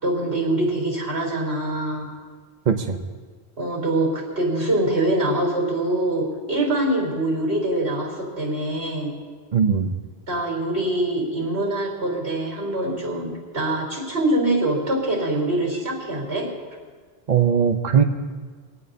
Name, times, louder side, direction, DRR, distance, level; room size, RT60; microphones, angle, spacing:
voice 1, 0.0-2.1 3.6-9.1 10.3-16.5, right 1 dB, 85° right, -1 dB, 4.2 m, -24 dB
voice 2, 2.7-3.0 9.5-10.0 17.3-18.0, right 7 dB, 45° right, 5 dB, 0.8 m, -19 dB
22.0 x 18.0 x 2.8 m, 1.5 s
omnidirectional pair, 1.1 m